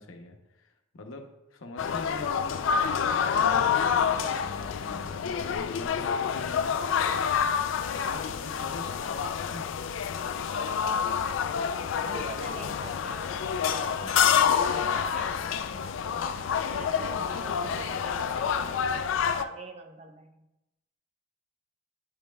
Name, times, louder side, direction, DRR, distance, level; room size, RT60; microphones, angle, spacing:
voice 1, 0.0-7.7 8.0-9.7 13.8-14.2 15.7-16.0, left 2 dB, 85° left, 4 dB, 0.8 m, -44 dB
sound 1, 1.8-19.4, left 7 dB, 70° left, 0.3 m, -28 dB
voice 2, 10.8-13.5 14.0-15.4 16.0-20.5, right 3 dB, 35° right, 5 dB, 0.7 m, -45 dB
8.5 x 5.2 x 2.2 m, 0.92 s
head